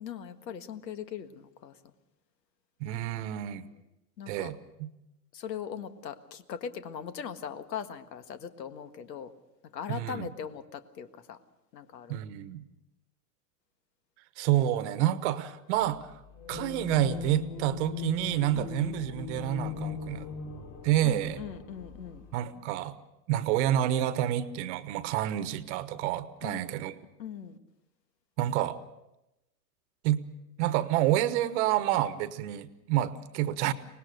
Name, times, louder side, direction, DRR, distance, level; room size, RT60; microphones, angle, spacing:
voice 1, 0.0-1.7 4.2-4.5 5.3-9.3 9.7-11.4 11.7-12.2 18.5-18.8 21.0-22.2 26.4-26.8 27.2-27.6, left 8 dB, 80° left, 10 dB, 1.8 m, -40 dB
voice 2, 2.8-3.6 4.3-4.9 9.9-10.3 12.1-12.7 14.4-16.1 16.5-20.3 20.8-21.4 22.3-23.0 23.3-26.9 28.4-28.8 30.0-30.2 30.6-33.7, right 13 dB, 45° right, 13 dB, 1.2 m, -28 dB
sound 1, 16.3-22.3, left 6 dB, 35° left, 3.0 m, -39 dB
24.5 x 19.5 x 6.6 m, 0.92 s
hypercardioid pair, 140°, 49 cm